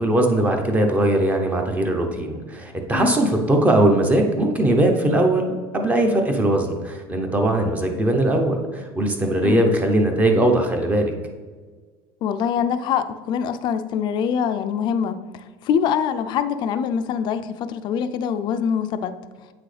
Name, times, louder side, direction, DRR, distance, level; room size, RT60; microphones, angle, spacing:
voice 1, 0.0-11.1, right 1 dB, 15° right, 3 dB, 0.8 m, -20 dB
voice 2, 12.2-19.1, left 7 dB, 40° left, 10 dB, 0.4 m, -24 dB
8.3 x 6.1 x 3.3 m, 1.5 s
cardioid pair, 160°, 12 cm